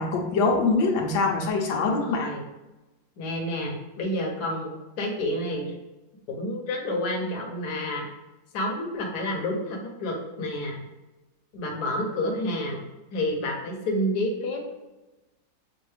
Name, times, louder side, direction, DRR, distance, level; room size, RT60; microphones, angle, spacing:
voice 1, 0.0-2.3, left 3 dB, 90° left, 1 dB, 1.5 m, -24 dB
voice 2, 1.7-2.5 3.2-5.7 6.3-8.1 8.5-10.8 11.5-14.6, left 1 dB, 60° left, 0 dB, 1.4 m, -29 dB
6.4 x 2.6 x 3.2 m, 1.0 s
omnidirectional pair, 2.0 m